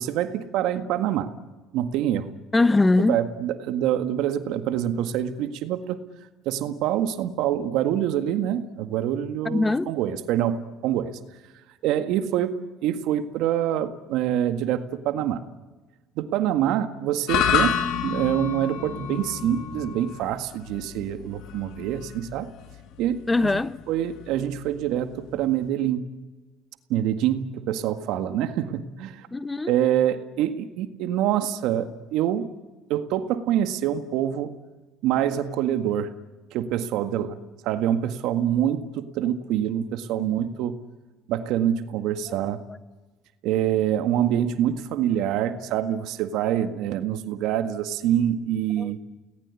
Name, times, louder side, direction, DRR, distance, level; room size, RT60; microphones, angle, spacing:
voice 1, 0.0-1.3 1.7-2.3 3.0-6.0 6.5-11.1 11.8-12.6 12.8-15.4 16.2-22.5 23.0-23.6 23.9-26.0 26.9-29.3 29.7-32.5 32.9-34.5 35.0-36.1 36.5-37.4 37.6-40.8 41.3-42.6 43.4-49.0, right 11 dB, 70° right, 1.8 m, -25 dB
voice 2, 2.5-3.2 9.4-9.9 23.3-23.8 29.3-29.8 40.1-40.3 42.3-42.4 48.8-49.0, left 2 dB, 20° left, 0.9 m, -22 dB
sound 1, 17.3-25.7, left 8 dB, 70° left, 2.7 m, -30 dB
30.0 x 19.5 x 8.4 m
hypercardioid pair, 70°, 0 cm